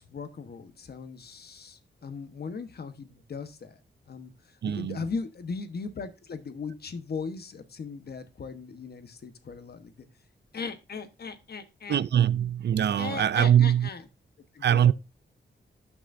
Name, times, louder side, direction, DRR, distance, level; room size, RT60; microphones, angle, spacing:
voice 1, 0.0-3.8 4.1-10.1 10.5-12.0 13.0-14.0 14.5-14.9, left 5 dB, 55° left, 1.2 m, -38 dB
voice 2, 4.6-5.0 11.9-13.9 14.6-14.9, right 10 dB, 65° right, 0.5 m, -22 dB
17.5 x 6.1 x 2.6 m
wide cardioid pair, 150°, 19 cm